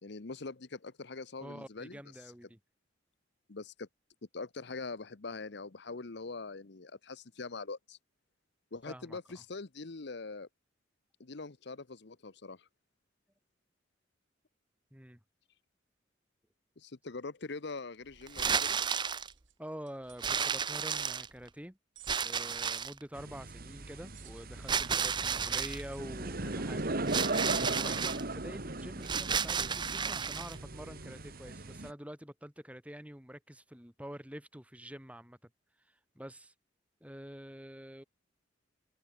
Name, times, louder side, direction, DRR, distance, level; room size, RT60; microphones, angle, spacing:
voice 1, 0.0-2.2 3.5-3.9 4.3-8.0 8.7-10.5 11.2-12.7 16.8-18.8 25.3-25.6, left 3 dB, 60° left, 0.9 m, -43 dB
voice 2, 1.4-2.6 8.9-9.2 14.9-15.2 19.6-21.8 22.2-27.0 27.7-35.4 36.2-36.5 37.0-38.0, equal, 5° right, 3.8 m, -47 dB
sound 1, 18.3-19.3 20.2-21.5 22.1-23.0 24.7-25.8 27.1-28.2 29.0-30.6, right 6 dB, 25° right, 0.6 m, -32 dB
sound 2, 19.3-20.3 22.0-22.6 24.1-24.6 25.9-27.0 28.3-28.4 28.7-28.9, right 14 dB, 85° right, 4.8 m, -59 dB
sound 3, 23.1-31.9, right 2 dB, 50° right, 1.9 m, -38 dB
head